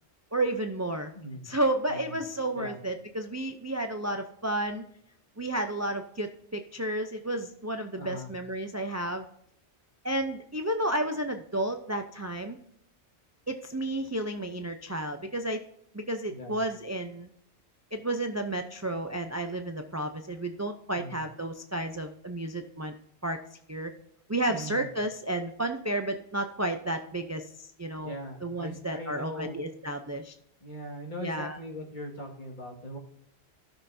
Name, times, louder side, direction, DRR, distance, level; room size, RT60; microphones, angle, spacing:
voice 1, 0.3-1.1 1.4-4.8 5.4-9.2 10.0-12.6 13.5-15.6 15.9-17.3 17.9-22.9 23.2-23.4 23.7-23.9 24.3-28.1 28.4-30.3 31.2-31.6, right 1 dB, 20° right, 6 dB, 0.5 m, -32 dB
voice 2, 1.1-1.5 1.9-2.2 2.5-2.8 8.0-8.3 16.3-16.6 20.9-21.2 24.5-25.0 28.0-29.6 30.6-33.0, equal, 45° left, 0 dB, 2.1 m, -40 dB
17.0 x 6.4 x 2.7 m, 0.74 s
omnidirectional pair, 1.1 m